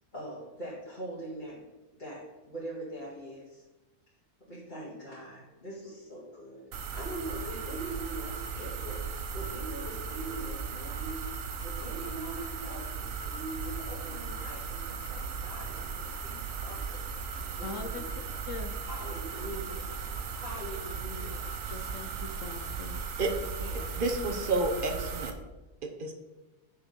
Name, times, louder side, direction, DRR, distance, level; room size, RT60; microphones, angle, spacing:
voice 1, 0.1-1.7 2.0-3.7 4.4-11.3 11.6-18.0 18.9-19.9 20.3-21.5 23.5-24.0, right 1 dB, 30° left, -8 dB, 2.0 m, -42 dB
sound 1, 6.7-25.3, right 5 dB, 60° right, 1.1 m, -37 dB
voice 2, 17.6-18.0 18.5-18.7 21.7-23.0, left 5 dB, 60° left, 7 dB, 0.9 m, -41 dB
voice 3, 24.0-25.3 25.8-26.2, right 2 dB, 40° right, 5 dB, 0.9 m, -30 dB
6.6 x 5.6 x 6.7 m, 1.1 s
omnidirectional pair, 1.7 m